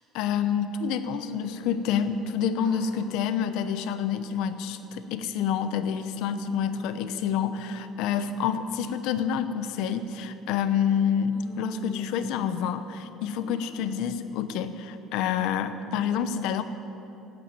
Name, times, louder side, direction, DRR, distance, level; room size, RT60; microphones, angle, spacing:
voice 1, 0.1-16.6, left 8 dB, 65° left, 10 dB, 0.9 m, -28 dB
sound 1, 1.1-2.3 2.5-3.1 3.5-3.8 4.3-4.9 5.4-6.1 6.5-8.3 8.8-9.0 9.5-10.0 10.5-11.0 11.3-12.9 13.4-14.0, right 1 dB, 65° right, 4.4 m, -46 dB
17.0 x 8.7 x 8.9 m, 2.9 s
cardioid pair, 175°, 0 cm